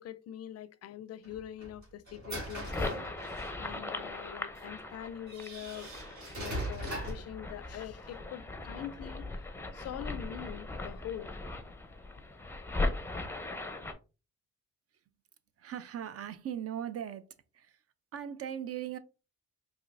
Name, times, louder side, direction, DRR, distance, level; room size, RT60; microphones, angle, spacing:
voice 1, 0.0-5.9 6.3-9.3 9.7-11.3, left 11 dB, 55° left, 0.4 m, -43 dB
sound 1, 1.2-3.7 4.6-4.7 5.3-7.3, right 1 dB, 65° right, 2.2 m, -40 dB
sound 2, 2.5-13.9, left 2 dB, 10° left, 0.6 m, -39 dB
voice 2, 15.6-17.3 17.5-17.8 18.1-19.0, right 9 dB, 50° right, 0.6 m, -39 dB
4.8 x 2.7 x 2.5 m
cardioid pair, 90°, 30 cm